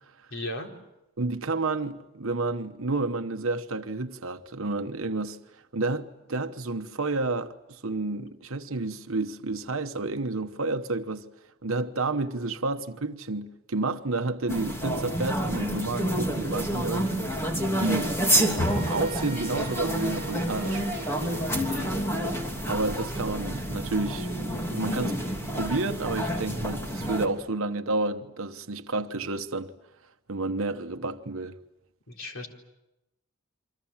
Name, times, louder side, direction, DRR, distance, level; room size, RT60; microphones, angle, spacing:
voice 1, 0.3-0.7 21.5-21.9 32.1-32.5, left 1 dB, 65° left, 4.2 m, -36 dB
voice 2, 1.2-5.4 5.7-11.3 11.6-17.2 17.8-20.9 22.7-25.2 25.5-29.7 30.3-31.6, right 3 dB, 70° right, 1.1 m, -30 dB
sound 1, 14.5-27.3, equal, 10° left, 3.0 m, -29 dB
sound 2, 18.6-22.3, right 1 dB, 30° right, 2.8 m, -43 dB
29.0 x 25.0 x 7.4 m
head